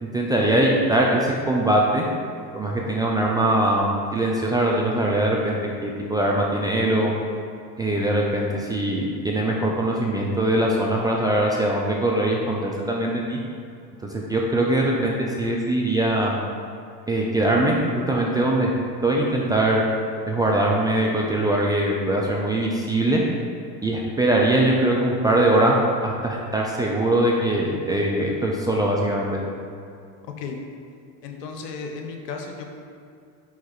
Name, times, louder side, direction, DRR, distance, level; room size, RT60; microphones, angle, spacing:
voice 1, 0.0-2.1 2.5-7.1 7.8-13.4 14.1-16.4 17.1-17.8 18.1-18.7 19.0-19.9 20.3-23.2 23.8-29.4, right 1 dB, 10° right, -3 dB, 0.3 m, -22 dB
voice 2, 31.2-32.7, left 4 dB, 75° left, 3 dB, 1.0 m, -34 dB
4.8 x 4.6 x 4.5 m, 2.5 s
hypercardioid pair, 80°, 49 cm